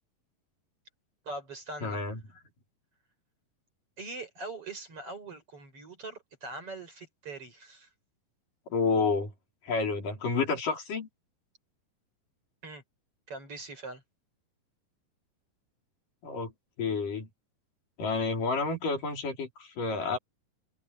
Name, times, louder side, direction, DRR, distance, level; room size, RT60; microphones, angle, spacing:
voice 1, 1.2-2.0 4.0-7.9 12.6-12.8 13.3-14.0, right 2 dB, 40° right, 6.7 m, -42 dB
voice 2, 1.8-2.2 8.7-9.3 9.6-11.1 16.2-16.5 16.8-17.3 18.0-20.2, left 4 dB, 70° left, 6.5 m, -29 dB
omnidirectional pair, 4.0 m